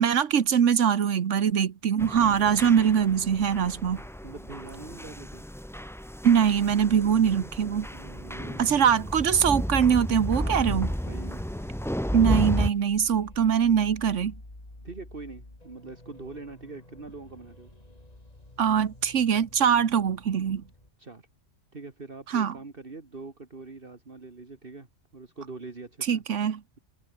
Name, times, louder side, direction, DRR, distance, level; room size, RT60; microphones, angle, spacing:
voice 1, 0.0-4.0 6.2-7.9 8.6-10.9 12.1-14.3 18.6-20.6 22.3-22.5 26.1-26.6, right 8 dB, 80° right, 1.4 m, -23 dB
sound 1, 2.0-12.7, equal, ahead, 1.0 m, -33 dB
voice 2, 4.2-5.5 7.9-8.6 10.4-11.5 14.8-17.7 21.0-21.3 21.7-24.9 25.1-26.2, right 3 dB, 50° right, 2.5 m, -43 dB
sound 2, 10.2-20.9, left 1 dB, 30° left, 4.0 m, -50 dB
omnidirectional pair, 1.2 m